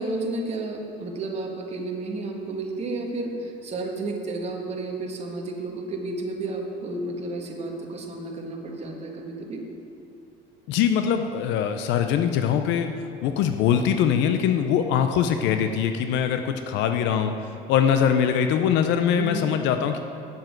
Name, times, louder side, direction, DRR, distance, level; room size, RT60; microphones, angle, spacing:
voice 1, 0.0-9.6 19.1-19.5, right 2 dB, 35° right, 1 dB, 1.5 m, -32 dB
voice 2, 10.7-12.9 13.2-20.0, left 8 dB, 65° left, 7 dB, 0.6 m, -22 dB
7.6 x 7.3 x 7.8 m, 2.6 s
cardioid pair, 125°, 20 cm